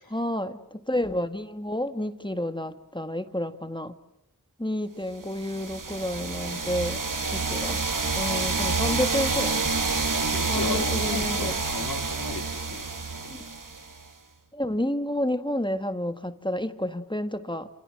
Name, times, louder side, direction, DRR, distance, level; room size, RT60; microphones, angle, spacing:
voice 1, 0.1-3.9 4.6-7.0 7.3-7.8 8.1-9.7 10.5-11.5 13.3-13.4 14.5-17.7, left 1 dB, 15° left, 9 dB, 1.6 m, -30 dB
sound 1, 5.3-14.1, right 4 dB, 60° right, 1.6 m, -28 dB
voice 2, 10.3-13.2, left 3 dB, 75° left, 1 dB, 3.6 m, -35 dB
28.0 x 28.0 x 6.5 m, 0.81 s
wide cardioid pair, 45°, 37 cm